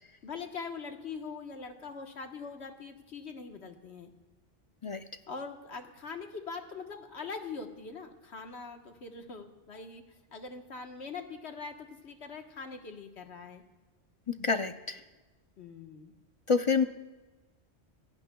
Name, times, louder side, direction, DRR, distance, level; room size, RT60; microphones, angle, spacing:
voice 1, 0.2-4.1 5.3-10.0 10.3-13.6 15.6-16.1, left 4 dB, 80° left, 4 dB, 1.6 m, -42 dB
voice 2, 14.3-15.0 16.5-16.8, left 5 dB, 40° left, 8 dB, 0.5 m, -27 dB
25.0 x 17.5 x 2.3 m, 1.2 s
omnidirectional pair, 1.1 m